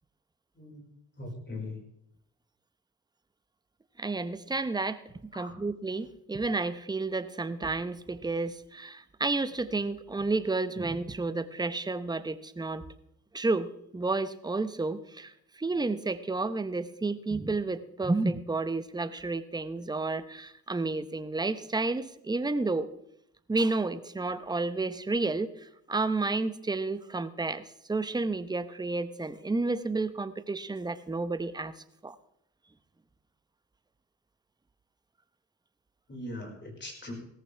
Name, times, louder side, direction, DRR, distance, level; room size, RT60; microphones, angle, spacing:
voice 1, 1.2-1.8 5.3-5.6 36.1-37.1, left 2 dB, 30° left, 1 dB, 5.1 m, -40 dB
voice 2, 4.0-5.0 5.3-12.9 13.3-13.7 13.9-22.9 23.5-31.7 32.0-32.2, right 3 dB, 10° right, 12 dB, 0.9 m, -31 dB
17.0 x 14.5 x 3.4 m, 0.75 s
cardioid pair, 90°, 36 cm